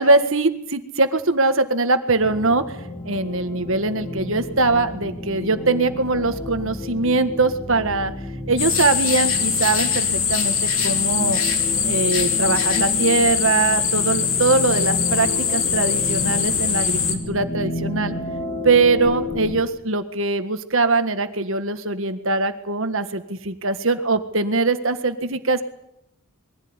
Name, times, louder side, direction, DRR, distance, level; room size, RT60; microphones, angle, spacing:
voice 1, 0.0-2.8 3.0-8.1 8.5-10.6 10.8-11.4 11.8-18.1 18.6-25.6, right 3 dB, 60° right, 9 dB, 1.7 m, -21 dB
sound 1, 2.2-19.6, left 2 dB, 25° left, 2.2 m, -32 dB
sound 2, 8.6-17.2, left 7 dB, 65° left, 3.1 m, -22 dB
22.5 x 15.5 x 9.8 m, 0.79 s
head